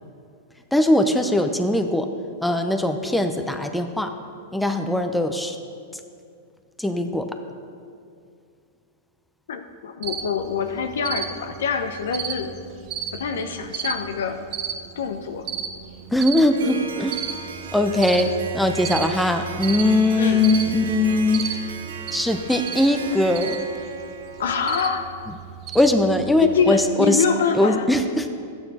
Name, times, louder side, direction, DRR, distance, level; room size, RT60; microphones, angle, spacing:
voice 1, 0.7-2.1 2.4-4.1 4.5-5.6 6.8-7.3 16.1-17.2 17.7-21.4 22.1-23.6 25.7-27.2 27.5-28.3, left 1 dB, 5° left, 6 dB, 0.7 m, -20 dB
voice 2, 9.5-12.5 13.1-14.4 15.0-15.5 20.2-20.5 24.4-25.1 26.4-27.9, left 6 dB, 75° left, 8 dB, 0.8 m, -25 dB
Cricket, 10.0-26.8, right 7 dB, 40° right, 0.9 m, -35 dB
Harp, 16.5-25.3, right 5 dB, 80° right, 1.0 m, -36 dB
12.5 x 9.0 x 4.2 m, 2.4 s
hypercardioid pair, 115°, 0 cm